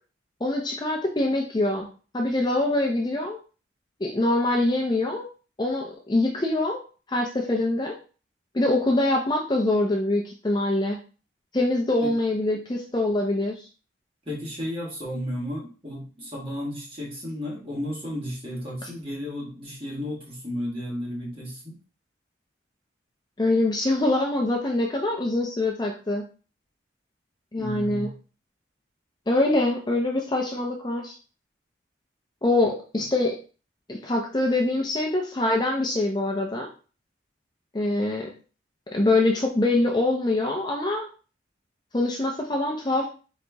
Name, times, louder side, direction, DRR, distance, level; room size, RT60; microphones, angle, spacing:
voice 1, 0.4-1.9 2.1-3.4 4.0-5.3 5.6-6.8 7.1-8.0 8.5-11.0 11.5-13.7 23.4-26.2 27.5-28.1 29.3-31.1 32.4-33.3 33.9-36.7 37.7-38.3 38.9-41.1 41.9-43.1, left 2 dB, 20° left, 1 dB, 0.5 m, -24 dB
voice 2, 14.2-21.7 27.6-28.1, equal, 30° right, -4 dB, 1.6 m, -33 dB
4.0 x 2.9 x 3.4 m, 0.36 s
head